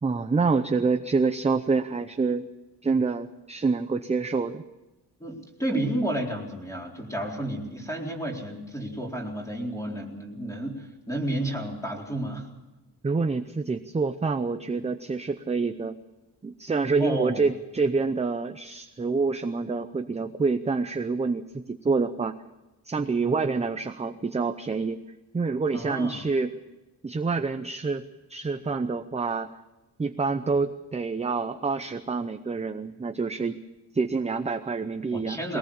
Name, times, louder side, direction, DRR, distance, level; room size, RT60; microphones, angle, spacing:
voice 1, 0.0-2.5 2.8-4.6 5.7-5.9 13.0-16.0 16.4-22.4 22.8-25.0 25.3-26.5 27.0-28.0 28.3-29.5 30.0-33.6 33.9-35.6, right 4 dB, 15° right, 8 dB, 0.6 m, -27 dB
voice 2, 5.2-12.5 17.0-17.4 25.7-26.2 35.1-35.6, right 1 dB, 10° left, -1 dB, 4.1 m, -31 dB
22.5 x 18.5 x 7.1 m, 1.1 s
wide cardioid pair, 180°, 41 cm